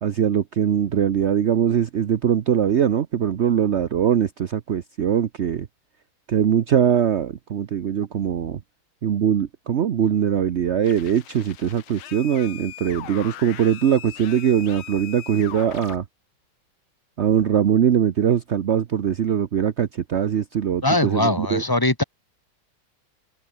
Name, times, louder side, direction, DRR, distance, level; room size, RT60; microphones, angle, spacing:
voice 1, 0.0-5.7 6.3-8.6 9.0-16.0 17.2-21.6, right 9 dB, 65° right, 0.7 m, -21 dB
sound 1, 10.8-16.0, left 13 dB, 85° left, 1.8 m, -40 dB
voice 2, 20.8-22.0, left 2 dB, 15° left, 0.9 m, -21 dB
omnidirectional pair, 2.2 m